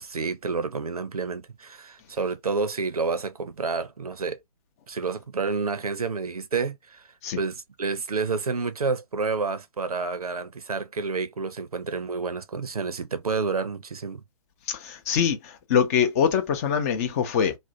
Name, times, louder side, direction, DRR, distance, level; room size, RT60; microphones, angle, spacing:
voice 1, 0.0-4.4 4.9-7.1 7.4-14.2, right 4 dB, 80° right, 0.6 m, -29 dB
voice 2, 14.7-17.6, left 7 dB, 25° left, 0.5 m, -24 dB
2.5 x 2.1 x 2.6 m
figure-of-eight pair, 130°, 19 cm